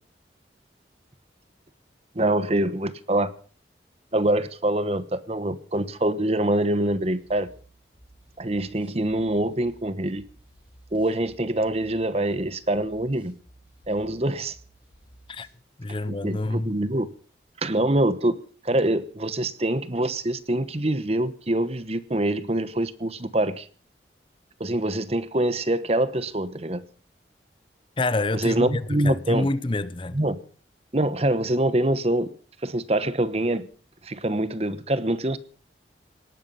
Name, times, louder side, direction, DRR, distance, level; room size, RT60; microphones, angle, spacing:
voice 1, 2.1-3.3 4.1-7.5 8.4-10.2 10.9-13.3 13.9-14.6 16.1-17.1 17.6-18.4 18.6-23.7 24.6-26.8 28.3-29.5 30.1-30.4 30.9-32.3 32.6-33.7 34.0-35.4, right 1 dB, 35° right, 1.1 m, -25 dB
sound 1, 7.1-15.6, right 1 dB, 10° right, 4.9 m, -55 dB
voice 2, 15.8-16.7 28.0-30.2, left 2 dB, 30° left, 0.7 m, -27 dB
18.5 x 13.5 x 5.7 m
head